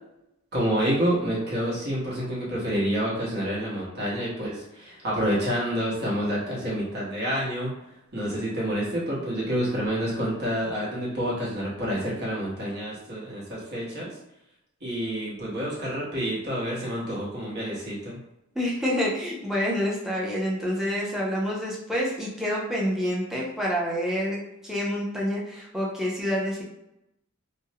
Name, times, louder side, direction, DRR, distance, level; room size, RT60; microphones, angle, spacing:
voice 1, 0.5-7.7 8.1-14.1 14.8-18.2, equal, 55° right, -5 dB, 1.0 m, -28 dB
voice 2, 18.5-26.6, equal, ahead, -5 dB, 0.5 m, -28 dB
2.5 x 2.0 x 2.7 m, 0.86 s
head